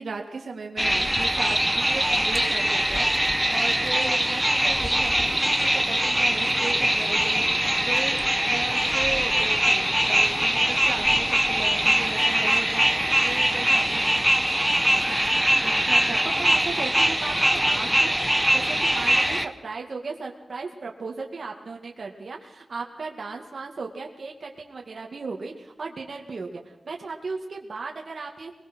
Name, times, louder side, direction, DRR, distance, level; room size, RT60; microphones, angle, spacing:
voice 1, 0.0-8.2 8.5-14.1 14.9-15.3, right 4 dB, 80° right, 2 dB, 2.6 m, -36 dB
sound 1, 0.8-19.5, right 1 dB, 5° right, 1.2 m, -22 dB
voice 2, 15.6-18.1 18.5-28.5, right 4 dB, 60° right, 0 dB, 2.3 m, -36 dB
22.0 x 21.0 x 6.4 m, 0.91 s
wide cardioid pair, 100°, 0 cm